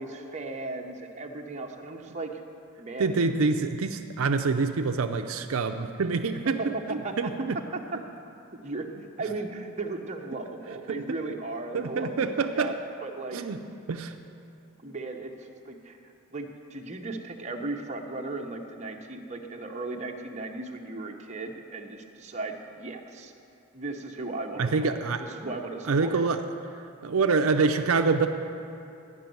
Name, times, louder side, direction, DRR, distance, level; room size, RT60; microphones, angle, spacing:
voice 1, 0.0-2.3 2.8-3.3 6.6-7.3 7.7-7.8 8.6-8.9 9.2-12.8 13.0-13.4 14.8-16.0 16.3-23.3 23.7-25.0 25.3-26.3, right 3 dB, 30° right, 2 dB, 0.8 m, -36 dB
voice 2, 3.0-6.6 6.9-7.6 10.9-11.0 11.7-12.8 13.3-13.6 13.9-14.2 24.6-25.2 25.9-26.5 27.0-28.3, right 4 dB, 70° right, 6 dB, 0.5 m, -26 dB
12.0 x 6.1 x 9.2 m, 2.7 s
head